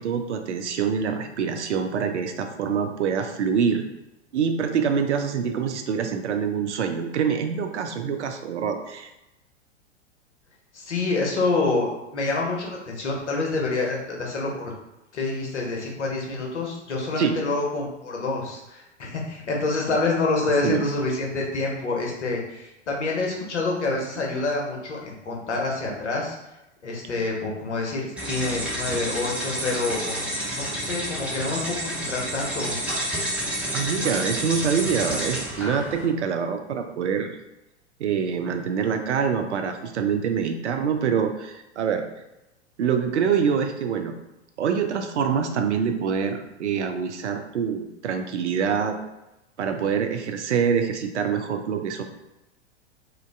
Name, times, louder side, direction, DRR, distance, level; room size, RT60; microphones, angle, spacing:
voice 1, 0.0-3.9 4.3-9.1 17.2-17.4 20.6-20.9 33.7-37.4 38.0-42.1 42.8-44.1 44.6-49.0 49.6-52.0, right 6 dB, 75° right, 6 dB, 0.5 m, -25 dB
voice 2, 10.7-14.7 15.1-26.4 26.8-32.8, left 3 dB, 75° left, -1 dB, 0.9 m, -27 dB
sound 1, 28.2-36.1, right 1 dB, 5° right, 0.3 m, -29 dB
2.6 x 2.2 x 3.3 m, 0.95 s
figure-of-eight pair, 95°, 35 cm